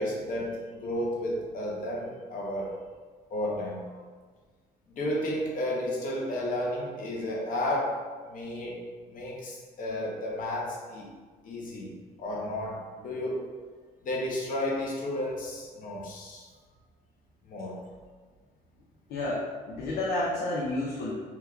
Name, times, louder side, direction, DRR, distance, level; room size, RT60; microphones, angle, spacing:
voice 1, 0.0-2.7 3.3-3.9 4.9-8.8 9.1-11.1 11.4-13.5 14.0-16.5 17.4-17.8, left 1 dB, 55° left, -3 dB, 0.8 m, -32 dB
voice 2, 19.1-21.2, left 2 dB, 80° left, -5 dB, 0.6 m, -30 dB
2.9 x 2.3 x 3.5 m, 1.5 s
cardioid pair, 110°, 17 cm